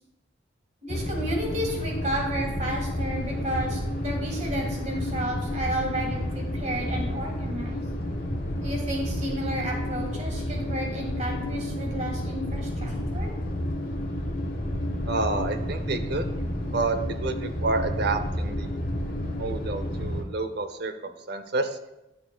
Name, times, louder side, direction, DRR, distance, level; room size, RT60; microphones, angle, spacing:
voice 1, 0.8-7.8 8.6-13.3, right 1 dB, 40° right, 0 dB, 2.0 m, -32 dB
sound 1, 0.9-20.2, left 1 dB, 50° left, 1.2 m, -30 dB
voice 2, 15.1-16.3 16.7-18.8 19.3-21.8, right 3 dB, 60° right, 9 dB, 0.7 m, -29 dB
12.0 x 6.8 x 2.3 m, 0.93 s
head